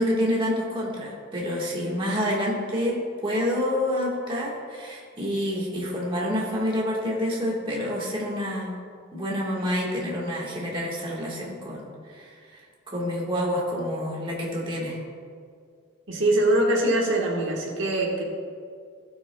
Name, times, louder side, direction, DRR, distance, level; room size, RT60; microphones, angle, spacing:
voice 1, 0.0-3.0 3.2-8.7 9.1-12.6 12.9-15.0, equal, 25° right, -4 dB, 1.4 m, -28 dB
voice 2, 16.1-18.2, right 1 dB, 70° right, -1 dB, 1.3 m, -23 dB
17.0 x 6.1 x 2.2 m, 2.2 s
head